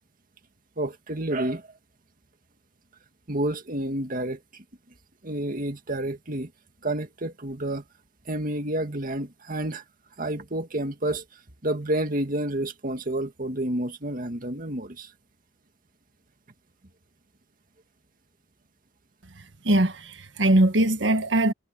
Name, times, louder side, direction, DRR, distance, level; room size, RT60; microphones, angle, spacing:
voice 1, 0.8-1.7 3.3-4.6 5.2-6.5 6.8-7.8 8.3-9.8 10.2-15.1, right 1 dB, 50° right, 2.0 m, -29 dB
voice 2, 19.6-21.5, right 1 dB, 75° right, 1.6 m, -21 dB
head